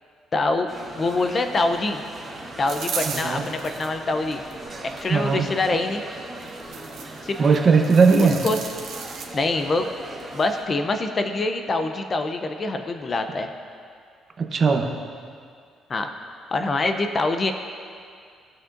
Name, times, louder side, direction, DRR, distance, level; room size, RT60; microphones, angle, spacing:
voice 1, 0.3-2.0 2.6-4.4 4.8-6.0 7.2-7.4 8.2-8.6 9.3-9.9 10.3-13.5 15.9-16.1 16.5-17.5, left 2 dB, 30° left, 6 dB, 0.5 m, -25 dB
sound 1, 0.7-10.6, right 1 dB, 15° right, 2.1 m, -39 dB
sound 2, 2.7-3.9 4.5-5.1 6.4-7.2 7.5-9.2, right 6 dB, 70° right, 1.2 m, -34 dB
voice 2, 3.1-3.5 5.1-5.5 7.4-8.5 14.4-15.0, right 4 dB, 35° right, 3 dB, 0.8 m, -19 dB
17.5 x 6.3 x 2.6 m, 2.2 s
cardioid pair, 130°, 0 cm